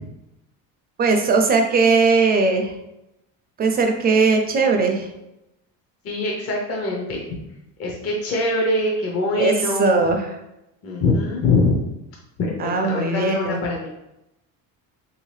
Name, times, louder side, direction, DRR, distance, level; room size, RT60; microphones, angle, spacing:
voice 1, 1.0-2.7 3.6-5.1 9.4-10.3 12.6-13.6, right 4 dB, 25° right, 4 dB, 0.4 m, -19 dB
voice 2, 6.0-7.4 7.8-10.0 10.8-11.8 12.4-13.9, left 2 dB, 40° left, -2 dB, 0.6 m, -23 dB
3.0 x 2.8 x 3.2 m, 0.89 s
cardioid pair, 140°, 40 cm